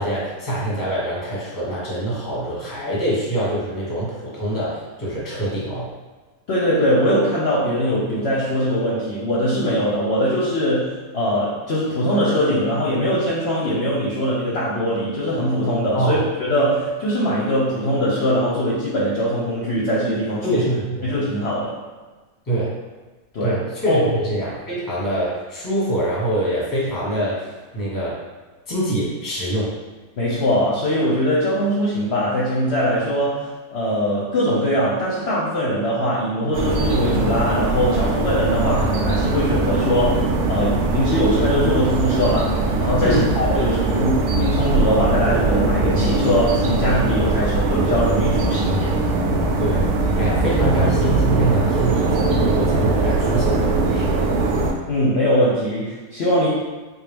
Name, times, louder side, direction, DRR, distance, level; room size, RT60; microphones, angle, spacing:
voice 1, 0.0-5.9 15.9-16.2 20.4-21.0 22.5-22.8 23.4-28.2 28.7-29.8 43.0-43.3 43.5-44.1 49.6-49.9 50.1-54.2, right 1 dB, 15° left, -6 dB, 0.9 m, -24 dB
voice 2, 6.5-16.2 16.5-20.6 21.0-21.8 23.3-23.6 23.9-24.0 30.2-48.9 54.9-56.5, equal, 55° left, -7 dB, 0.8 m, -21 dB
sound 1, 36.5-54.7, right 2 dB, 75° right, 1.1 m, -21 dB
3.9 x 2.5 x 3.3 m, 1.3 s
omnidirectional pair, 1.7 m